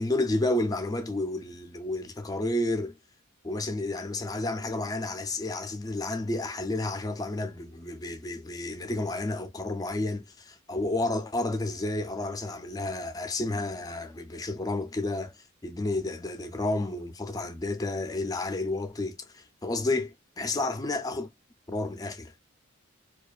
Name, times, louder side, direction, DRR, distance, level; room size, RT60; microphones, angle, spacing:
voice 1, 0.0-2.9 3.4-15.3 15.6-21.3 21.7-22.3, left 2 dB, 20° left, 0.4 m, -31 dB
2.4 x 2.3 x 2.4 m
head